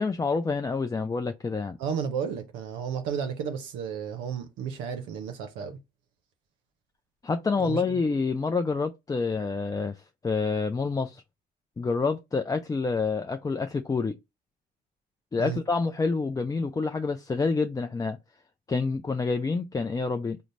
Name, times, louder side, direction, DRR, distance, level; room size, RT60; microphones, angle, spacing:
voice 1, 0.0-1.8 7.2-11.2 11.8-14.2 15.3-18.2 18.7-20.4, left 4 dB, 20° left, 0.3 m, -28 dB
voice 2, 1.8-5.8 7.6-7.8 15.4-15.6, right 7 dB, 90° right, 0.5 m, -32 dB
3.9 x 2.0 x 3.1 m
supercardioid pair, 60°, 19 cm